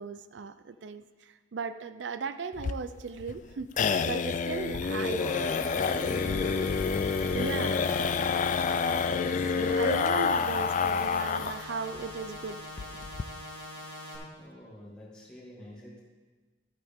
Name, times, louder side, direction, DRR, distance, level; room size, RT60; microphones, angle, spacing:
voice 1, 0.0-5.3 7.3-8.1 9.5-12.6, right 5 dB, 75° right, 12 dB, 0.5 m, -37 dB
sound 1, 2.6-11.7 12.0-12.1 12.4-12.5 12.8-13.2, left 5 dB, 45° left, 0.3 m, -28 dB
voice 2, 4.9-7.2 14.4-16.0, left 1 dB, 5° left, -6 dB, 2.4 m, -44 dB
sound 2, 5.2-14.2, left 1 dB, 20° right, 2.4 m, -43 dB
13.0 x 8.1 x 3.6 m, 1.3 s
head